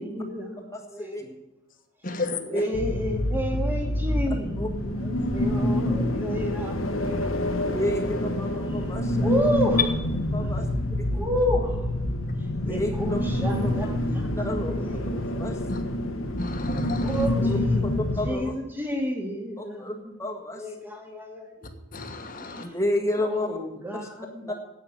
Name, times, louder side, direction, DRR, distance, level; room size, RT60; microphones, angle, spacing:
voice 1, 0.0-1.4 2.1-2.2 2.5-7.4 9.2-9.9 10.4-10.5 11.1-11.9 12.6-15.1 15.3-15.4 17.0-20.1 20.6-21.7 22.4-22.7 23.1-24.5, equal, 10° right, 1 dB, 2.2 m, -31 dB
voice 2, 0.7-1.2 2.2-2.7 4.6-4.7 7.7-9.3 10.3-11.1 12.5-13.7 14.3-14.7 15.4-15.6 17.4-17.6 18.2-18.5 19.6-19.9 20.2-20.7 22.5-23.6 24.0-24.1 24.5-24.6, left 1 dB, 15° left, 2 dB, 1.7 m, -31 dB
voice 3, 2.0-2.4 15.7-15.8 16.4-17.2 21.9-22.6, left 3 dB, 40° left, 6 dB, 1.5 m, -33 dB
sound 1, 2.7-18.3, left 1 dB, 75° left, 1.4 m, -27 dB
11.0 x 8.7 x 8.8 m, 1.0 s
head